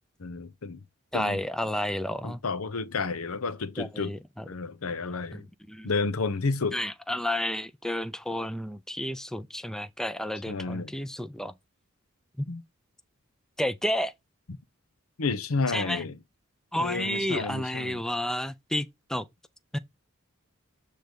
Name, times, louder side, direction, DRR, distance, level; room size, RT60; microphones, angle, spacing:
voice 1, 0.2-0.8 1.1-1.4 2.2-4.1 4.5-5.4 5.8-6.8 10.5-10.9 12.5-12.6 15.2-16.2 16.8-18.0, left 4 dB, 90° left, 0.8 m, -31 dB
voice 2, 1.1-2.4 3.8-4.4 5.3-5.4 5.7-5.9 6.7-11.5 12.4-12.5 13.6-14.1 15.7-16.0 16.7-19.2 19.7-19.8, left 1 dB, 5° left, 0.4 m, -31 dB
7.7 x 3.3 x 5.1 m
head